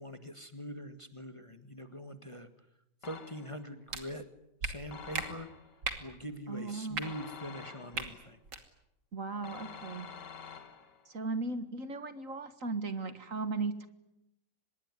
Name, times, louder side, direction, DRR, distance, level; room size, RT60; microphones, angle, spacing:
voice 1, 0.0-2.5 3.0-4.2 4.6-5.5 6.0-8.4, equal, 20° left, 9 dB, 1.6 m, -43 dB
sound 1, 3.0-3.7 4.9-5.8 7.0-8.2 9.4-11.1, left 7 dB, 90° left, 2.5 m, -48 dB
sound 2, 3.9-4.0 4.6-4.7 5.1-5.3 5.8-6.0 6.9-7.0 7.9-8.1 8.4-8.6, right 4 dB, 90° right, 3.2 m, -35 dB
voice 2, 6.5-7.0 9.1-10.1 11.1-13.9, right 3 dB, 50° right, 11 dB, 2.0 m, -36 dB
25.0 x 21.5 x 9.7 m, 0.85 s
omnidirectional pair, 1.8 m